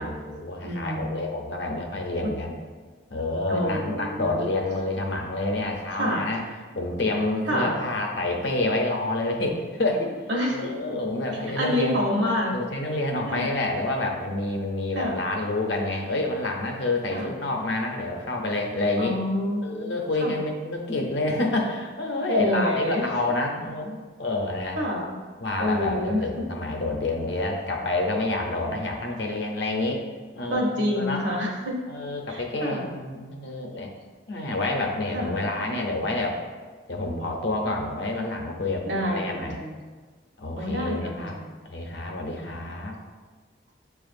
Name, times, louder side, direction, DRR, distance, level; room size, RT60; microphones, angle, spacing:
voice 1, 0.0-2.6 3.1-6.4 6.8-10.1 10.5-12.0 12.5-19.1 19.6-24.8 25.4-30.0 30.4-31.2 31.9-33.9 34.3-36.4 36.9-39.6 40.4-41.4 41.6-43.0, left 2 dB, 70° left, 2 dB, 0.6 m, -28 dB
voice 2, 0.6-1.2 2.2-2.3 3.5-4.5 5.9-6.2 7.5-7.8 10.3-10.6 11.5-12.5 13.2-13.5 14.9-15.2 17.1-17.3 19.0-20.4 22.3-23.1 24.7-25.1 25.6-26.2 30.5-31.8 32.3-32.9 35.1-35.4 38.8-39.7 40.5-41.5 42.4-42.5, left 1 dB, 75° right, -1 dB, 0.8 m, -27 dB
6.9 x 2.4 x 2.5 m, 1.4 s
head